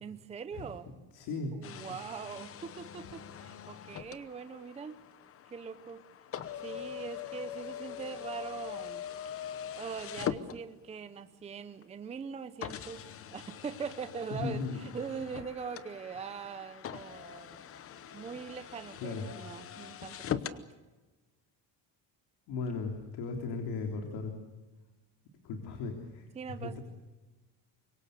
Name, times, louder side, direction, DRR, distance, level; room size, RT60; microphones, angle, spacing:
voice 1, 0.0-0.9 1.5-5.0 5.5-6.0 6.6-9.0 9.8-13.1 13.3-17.6 18.1-20.7 26.3-26.8, right 6 dB, 15° right, 10 dB, 0.7 m, -42 dB
voice 2, 1.1-1.5 14.4-14.8 19.0-19.3 22.5-24.3 25.4-26.8, left 4 dB, 65° left, 3 dB, 3.6 m, -37 dB
sound 1, 1.6-11.1 11.8-11.9 12.6-20.6, left 9 dB, 35° left, 0.9 m, -42 dB
26.0 x 23.5 x 6.7 m, 1.2 s
cardioid pair, 170°, 41 cm